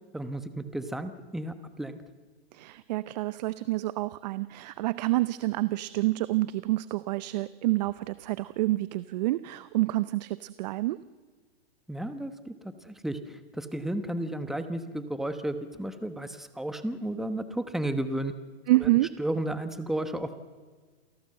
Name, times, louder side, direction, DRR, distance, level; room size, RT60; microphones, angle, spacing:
voice 1, 0.1-2.0 11.9-18.3 18.8-18.9 19.2-20.4, right 1 dB, ahead, 10 dB, 1.1 m, -33 dB
voice 2, 2.5-11.0 18.7-19.1, right 18 dB, 40° right, 16 dB, 0.6 m, -28 dB
28.0 x 17.5 x 7.7 m, 1.5 s
hypercardioid pair, 145°, 32 cm